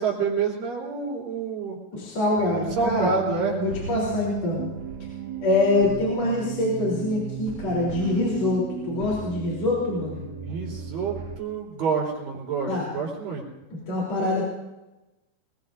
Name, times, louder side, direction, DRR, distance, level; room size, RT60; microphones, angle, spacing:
voice 1, 0.0-1.8 2.8-3.6 10.4-13.4, right 5 dB, 85° right, -2 dB, 5.4 m, -28 dB
voice 2, 1.9-3.1 3.6-4.7 5.4-10.3 12.7-12.9 13.7-14.4, left 2 dB, 50° left, -5 dB, 4.8 m, -25 dB
sound 1, 2.4-11.4, right 7 dB, 55° right, 2.7 m, -35 dB
24.0 x 20.5 x 2.7 m, 1.0 s
omnidirectional pair, 3.9 m